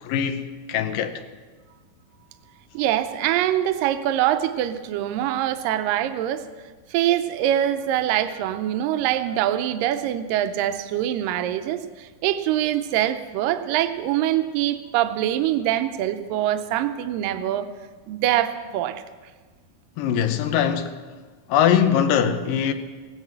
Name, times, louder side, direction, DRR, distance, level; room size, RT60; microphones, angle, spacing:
voice 1, 0.0-1.2 20.0-21.0 21.5-22.7, left 9 dB, 75° left, 2.4 m, -22 dB
voice 2, 2.7-6.5 6.9-17.7 18.1-19.0, right 12 dB, 80° right, 2.3 m, -24 dB
17.5 x 9.8 x 7.4 m
omnidirectional pair, 4.2 m